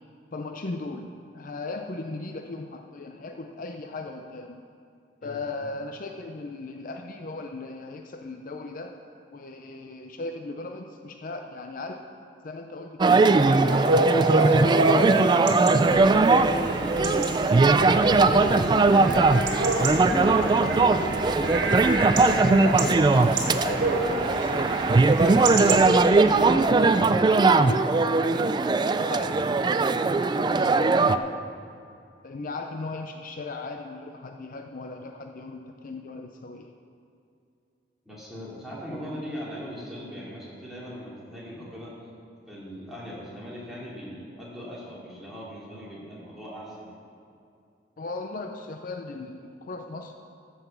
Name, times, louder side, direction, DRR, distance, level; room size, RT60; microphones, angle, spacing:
voice 1, 0.3-4.6 5.2-8.9 9.3-12.0 12.4-15.0 15.9-17.9 18.2-20.5 20.8-22.1 22.6-23.8 24.3-31.4 32.2-36.7 48.0-50.1, left 3 dB, 50° left, 5 dB, 0.5 m, -37 dB
sound 1, 13.0-31.2, right 3 dB, 25° right, 0.3 m, -20 dB
Chatter / Bark / Livestock farm animals working animals, 13.7-25.8, right 2 dB, 80° right, 1.7 m, -29 dB
sound 2, 15.7-26.6, right 2 dB, 65° right, 1.1 m, -36 dB
voice 2, 38.0-41.9 42.5-46.9, equal, ahead, -8 dB, 3.1 m, -39 dB
14.0 x 5.6 x 7.2 m, 2.5 s
head